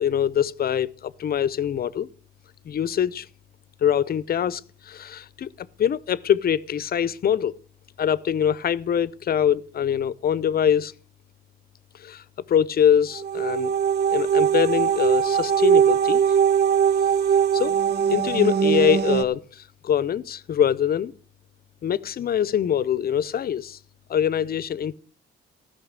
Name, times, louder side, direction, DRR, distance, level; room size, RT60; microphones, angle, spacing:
voice 1, 0.0-2.1 2.6-3.3 3.8-7.5 8.0-10.9 11.9-13.7 14.1-16.2 17.5-17.7 18.1-21.1 21.8-23.8 24.1-25.0, left 9 dB, 50° left, 0.7 m, -24 dB
sound 1, 13.1-19.2, right 8 dB, 55° right, 0.7 m, -20 dB
15.0 x 5.8 x 7.3 m
cardioid pair, 90°, 20 cm